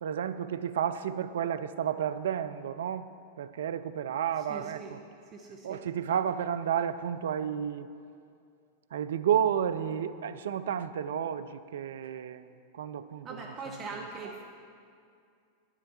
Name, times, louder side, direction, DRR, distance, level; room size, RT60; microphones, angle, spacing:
voice 1, 0.0-3.1 3.4-5.0 5.6-7.9 8.9-14.4, right 9 dB, 60° right, 12 dB, 0.4 m, -32 dB
voice 2, 4.5-4.9 5.3-5.8 13.2-14.4, right 3 dB, 30° right, 1 dB, 0.8 m, -41 dB
11.0 x 9.7 x 4.1 m, 2.4 s
figure-of-eight pair, 90°, 0 cm